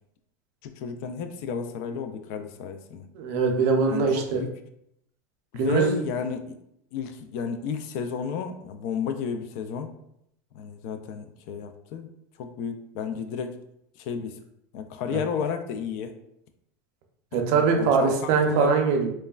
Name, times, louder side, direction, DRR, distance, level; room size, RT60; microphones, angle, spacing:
voice 1, 0.6-3.1 3.9-4.5 5.5-6.6 6.9-9.9 10.5-12.1 12.4-13.6 14.0-14.4 14.7-16.1 17.3-18.8, left 6 dB, 55° left, 8 dB, 0.3 m, -32 dB
voice 2, 3.2-4.4 5.6-5.9 15.1-15.2 17.3-19.1, right 5 dB, 55° right, 2 dB, 0.5 m, -22 dB
3.0 x 2.2 x 2.3 m, 0.75 s
supercardioid pair, 140°, 10 cm